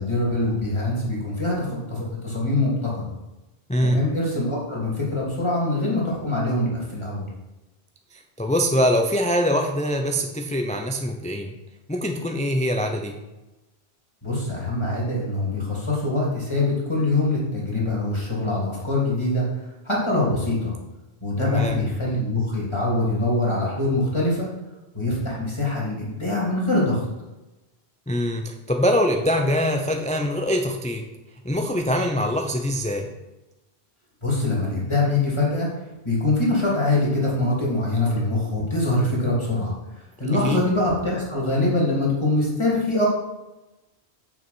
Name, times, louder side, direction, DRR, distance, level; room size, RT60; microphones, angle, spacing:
voice 1, 0.0-3.1 3.8-7.3 14.2-19.4 19.8-20.7 21.2-24.5 24.9-27.0 34.2-35.7 36.0-39.7 40.2-43.1, left 2 dB, 25° left, -5 dB, 3.2 m, -23 dB
voice 2, 3.7-4.0 8.1-11.5 11.9-13.2 21.4-21.8 28.1-31.0 31.4-33.1 40.4-40.6, equal, 10° left, 3 dB, 0.6 m, -23 dB
7.1 x 6.2 x 6.1 m, 1.0 s
omnidirectional pair, 1.1 m